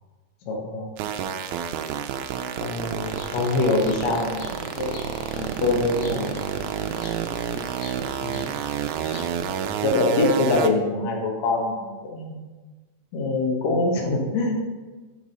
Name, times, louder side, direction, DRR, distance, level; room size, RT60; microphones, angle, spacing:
voice 1, 0.5-0.9 2.6-6.4 8.2-8.4 9.8-12.4 13.1-14.5, left 2 dB, 60° left, 0 dB, 2.2 m, -24 dB
sound 1, 1.0-10.7, right 8 dB, 80° right, 1.7 m, -29 dB
Bird, 3.0-9.3, left 3 dB, 75° left, 1.3 m, -43 dB
7.3 x 4.8 x 5.3 m, 1.3 s
omnidirectional pair, 3.9 m